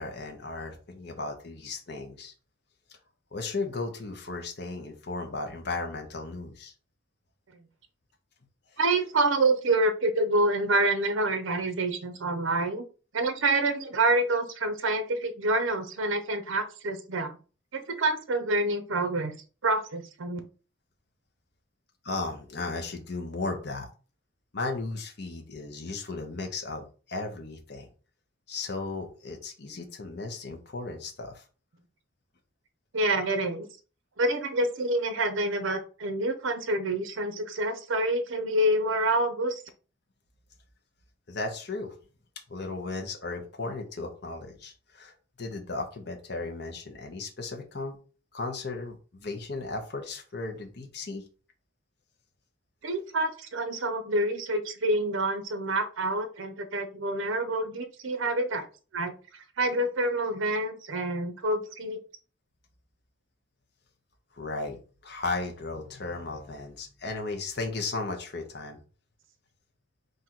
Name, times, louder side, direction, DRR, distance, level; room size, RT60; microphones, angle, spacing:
voice 1, 0.0-2.3 3.3-6.7 22.0-23.9 24.5-27.9 28.5-31.4 41.3-42.0 42.5-48.0 48.3-51.2 64.3-68.8, left 3 dB, 55° left, 2 dB, 0.8 m, -35 dB
voice 2, 8.8-12.8 13.1-17.4 17.7-19.3 19.6-20.4 32.9-33.7 34.2-39.5 52.8-58.7 58.9-59.1 59.6-62.0, right 2 dB, 70° right, 8 dB, 0.6 m, -27 dB
3.7 x 2.6 x 4.4 m, 0.36 s
head